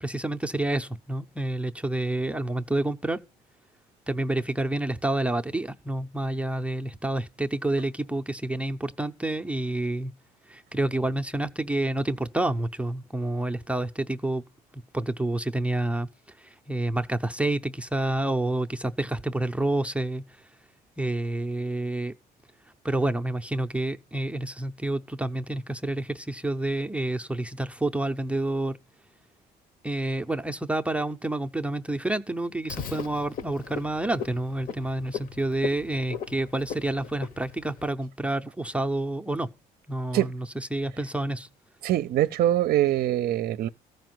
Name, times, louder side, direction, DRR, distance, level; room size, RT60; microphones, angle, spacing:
voice 1, 0.0-3.2 4.1-10.1 10.4-14.4 14.7-20.6 21.0-22.1 22.8-28.8 29.8-39.5 39.9-41.5, right 1 dB, 5° right, 0.6 m, -29 dB
Frog, 32.7-37.9, left 7 dB, 55° left, 1.3 m, -39 dB
voice 2, 41.8-43.7, right 13 dB, 60° right, 0.5 m, -23 dB
14.0 x 5.2 x 7.7 m
cardioid pair, 110°, 17 cm